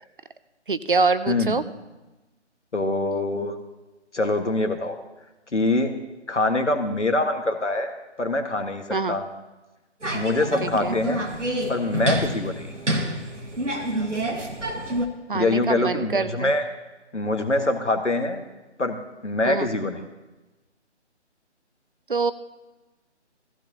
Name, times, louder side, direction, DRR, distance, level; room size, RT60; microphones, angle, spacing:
voice 1, 0.7-1.6 8.9-9.2 10.6-10.9 15.3-16.5 19.4-19.7 22.1-22.3, right 4 dB, 45° right, 14 dB, 0.6 m, -24 dB
voice 2, 1.3-1.6 2.7-3.6 4.1-5.0 5.5-5.9 6.3-9.3 10.1-11.2 11.7-12.7 15.3-16.6 17.1-18.4 18.8-20.0, left 2 dB, 75° left, 6 dB, 1.7 m, -24 dB
sound 1, 10.0-15.1, right 1 dB, 85° right, 1.7 m, -28 dB
17.0 x 15.0 x 2.9 m, 1.1 s
figure-of-eight pair, 150°, 35 cm